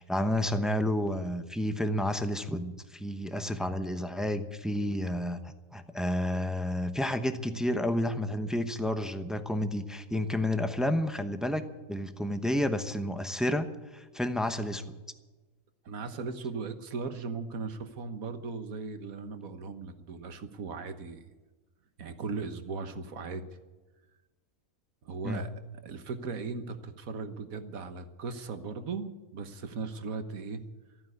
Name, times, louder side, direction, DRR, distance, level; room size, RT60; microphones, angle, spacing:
voice 1, 0.0-13.7 13.9-14.9 25.2-25.4, left 1 dB, ahead, 8 dB, 0.7 m, -30 dB
voice 2, 15.8-21.2 22.0-23.4 25.0-25.5 25.8-30.6, right 4 dB, 75° right, 9 dB, 1.6 m, -38 dB
14.0 x 9.5 x 9.6 m, 1.2 s
omnidirectional pair, 1.5 m